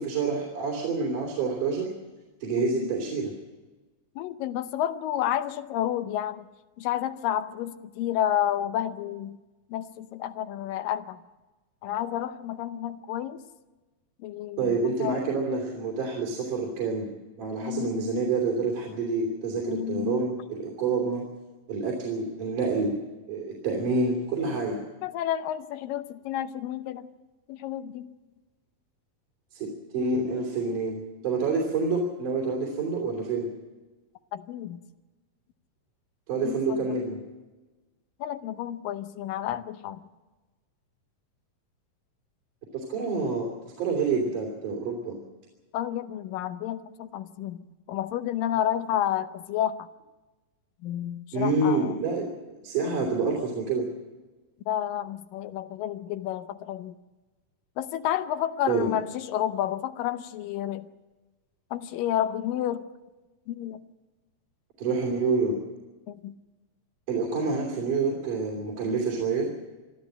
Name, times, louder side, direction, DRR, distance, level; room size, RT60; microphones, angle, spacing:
voice 1, 0.0-1.9 2.4-3.3 14.6-17.1 17.4-21.2 21.7-23.0 23.3-24.8 29.5-31.0 31.2-33.5 36.3-37.2 42.7-45.2 51.3-52.3 52.6-53.9 58.7-58.9 64.8-65.6 67.1-69.5, right 4 dB, 70° right, -1 dB, 4.5 m, -27 dB
voice 2, 2.6-2.9 4.2-6.5 6.8-9.4 9.7-11.2 11.8-13.4 14.2-15.2 17.6-18.3 19.7-20.3 25.0-27.1 27.5-28.1 34.3-34.8 36.4-37.0 38.2-40.0 45.7-49.9 50.8-52.0 54.7-56.9 57.8-60.9 61.7-62.8 63.5-63.8 66.1-66.3, left 11 dB, 90° left, 10 dB, 2.5 m, -30 dB
23.5 x 13.0 x 8.8 m, 1.2 s
omnidirectional pair, 3.8 m